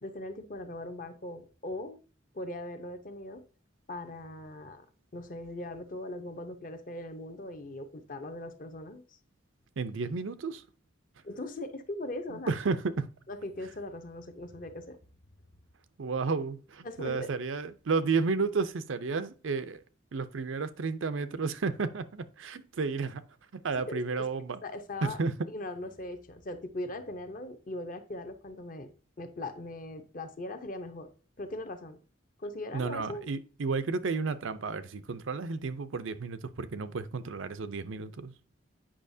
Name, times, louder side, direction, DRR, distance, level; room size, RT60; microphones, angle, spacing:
voice 1, 0.0-2.0 2.3-3.4 3.9-4.8 5.1-9.0 11.2-12.5 13.3-15.0 16.8-17.3 23.9-24.3 24.6-25.2 25.5-28.9 29.2-31.1 31.4-32.0 32.4-33.3, left 1 dB, 45° left, 0.8 m, -40 dB
voice 2, 9.8-10.6 12.3-13.1 16.0-19.8 20.1-23.2 23.5-24.6 25.0-25.3 32.7-38.3, right 4 dB, 85° right, 0.6 m, -32 dB
8.7 x 5.6 x 2.7 m
head